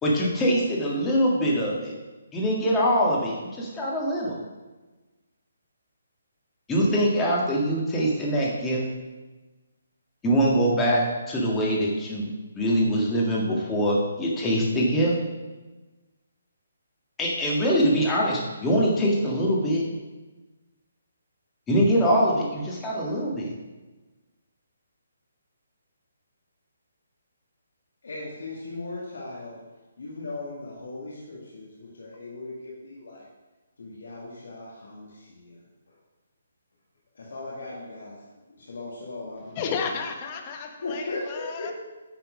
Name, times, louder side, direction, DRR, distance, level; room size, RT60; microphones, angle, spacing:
voice 1, 0.0-1.9 2.3-4.4 6.7-8.8 10.2-12.3 12.5-15.2 17.2-19.8 21.7-23.5, equal, 15° left, -4 dB, 1.7 m, -23 dB
voice 2, 28.0-29.6 30.0-33.3 33.8-35.6 37.2-38.2 38.6-39.7 40.8-41.7, left 2 dB, 70° left, -5 dB, 1.9 m, -37 dB
voice 3, 39.5-41.7, left 5 dB, 30° left, 4 dB, 1.0 m, -32 dB
9.2 x 4.3 x 5.1 m, 1.2 s
hypercardioid pair, 150°, 0 cm